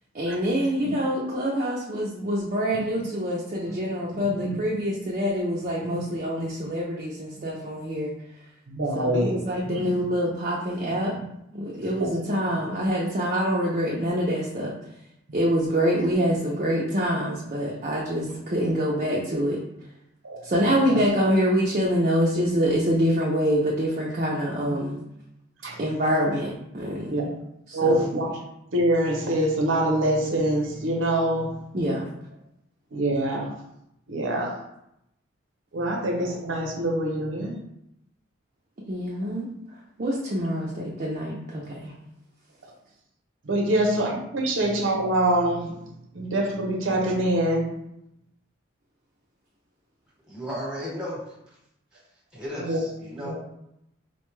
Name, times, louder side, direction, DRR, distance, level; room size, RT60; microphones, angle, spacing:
voice 1, 0.1-8.1 8.9-11.1 11.5-14.7 15.3-19.6 20.4-25.0 25.8-27.3 27.7-28.1 31.7-32.0 38.9-39.5 40.0-41.9 43.7-43.8, equal, 40° right, -4 dB, 0.5 m, -25 dB
voice 2, 8.7-9.4 9.6-9.9 12.0-12.1 20.2-20.4 20.9-21.0 25.6-25.7 27.1-27.2 27.7-28.3 28.7-31.5 32.9-33.5 34.1-34.5 35.7-37.6 43.5-45.7 46.1-47.7 52.6-52.8 53.2-53.3, right 1 dB, 80° right, 1 dB, 0.7 m, -25 dB
voice 3, 50.3-51.2 52.3-53.3, equal, 5° right, -5 dB, 1.1 m, -34 dB
4.2 x 2.2 x 3.1 m, 0.80 s
head